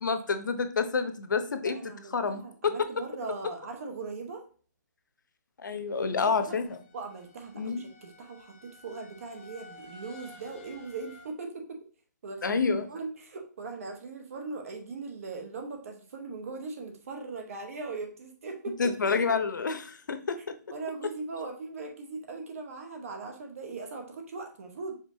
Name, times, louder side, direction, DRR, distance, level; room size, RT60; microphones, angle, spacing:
voice 1, 0.0-3.0 5.6-6.8 7.5-7.8 12.4-12.9 18.8-20.5, left 5 dB, 85° left, 9 dB, 0.7 m, -29 dB
voice 2, 1.6-4.4 6.1-6.5 6.9-11.8 12.2-18.8 20.7-25.0, right 4 dB, 50° right, 3 dB, 1.1 m, -40 dB
sound 1, 6.3-11.3, left 3 dB, 25° left, 1.6 m, -53 dB
5.1 x 3.3 x 2.7 m, 0.41 s
hypercardioid pair, 165°, 10 cm